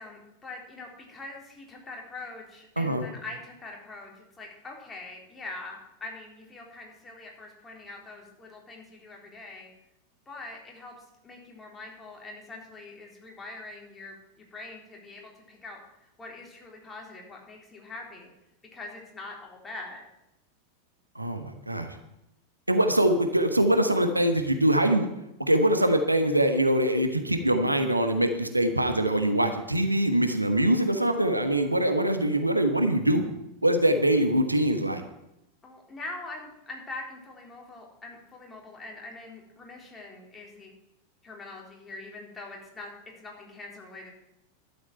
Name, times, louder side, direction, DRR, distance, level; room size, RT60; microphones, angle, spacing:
voice 1, 0.0-9.7 10.3-18.3 18.7-20.1 35.6-40.7 41.2-44.1, left 2 dB, 15° left, -1 dB, 3.9 m, -43 dB
voice 2, 21.1-21.9 22.7-25.1 25.4-33.3 33.6-35.0, right 1 dB, 85° right, 7 dB, 1.3 m, -23 dB
12.0 x 8.1 x 9.1 m, 0.87 s
figure-of-eight pair, 90°, 0 cm